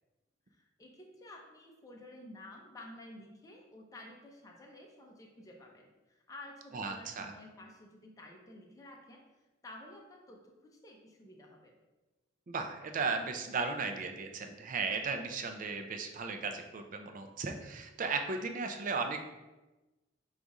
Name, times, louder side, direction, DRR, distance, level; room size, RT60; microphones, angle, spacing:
voice 1, 0.5-9.2 9.6-11.7, left 1 dB, 20° left, 0 dB, 0.5 m, -52 dB
voice 2, 6.7-7.3 12.5-19.2, right 4 dB, 45° right, 5 dB, 0.4 m, -36 dB
4.9 x 2.4 x 4.0 m, 1.1 s
head